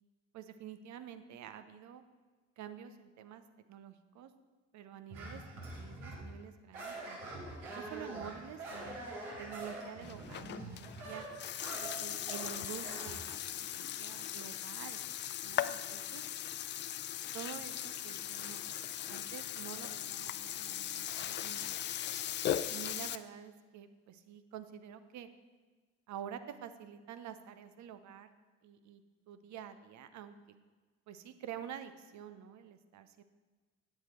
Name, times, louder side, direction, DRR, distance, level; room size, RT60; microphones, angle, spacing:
voice 1, 0.3-2.0 2.6-3.4 3.7-4.3 4.7-7.3 7.7-9.0 9.4-11.2 11.8-15.0 15.4-16.2 17.3-18.6 19.1-21.7 22.7-25.3 26.1-28.3 28.6-29.0 29.3-30.4 31.1-33.2, right 9 dB, 50° right, 10 dB, 0.8 m, -48 dB
sound 1, 5.1-6.3 6.7-13.2, right 2 dB, 75° right, 2.3 m, -45 dB
Burping eructation, 10.0-23.2, left 11 dB, 30° left, 0.4 m, -39 dB
9.2 x 7.7 x 4.4 m, 1.4 s
figure-of-eight pair, 50°, 36 cm